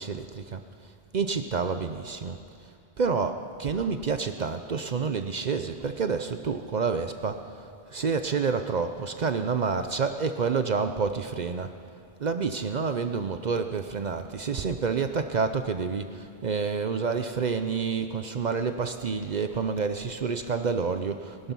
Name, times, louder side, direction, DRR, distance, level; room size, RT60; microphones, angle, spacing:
voice 1, 0.0-2.4 3.0-11.7 12.2-21.5, right 5 dB, 50° right, 8 dB, 0.7 m, -29 dB
20.5 x 12.0 x 5.5 m, 2.4 s
omnidirectional pair, 1.0 m